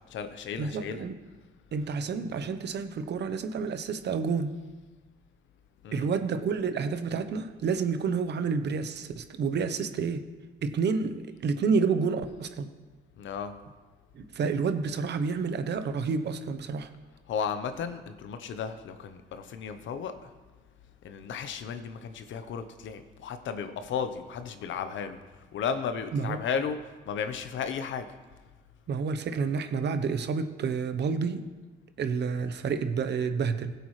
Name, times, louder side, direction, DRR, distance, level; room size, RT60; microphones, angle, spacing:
voice 1, 0.1-1.0 5.8-6.1 13.2-13.6 17.3-20.3 21.0-25.2 25.5-26.8 27.0-28.1, left 6 dB, 75° left, 9 dB, 0.9 m, -34 dB
voice 2, 0.6-1.2 1.7-4.6 5.9-10.3 10.6-12.7 14.1-16.9 26.1-26.4 28.9-31.5 32.0-33.7, right 5 dB, 60° right, 9 dB, 0.9 m, -29 dB
16.5 x 7.9 x 3.3 m, 1.3 s
cardioid pair, 90°, 20 cm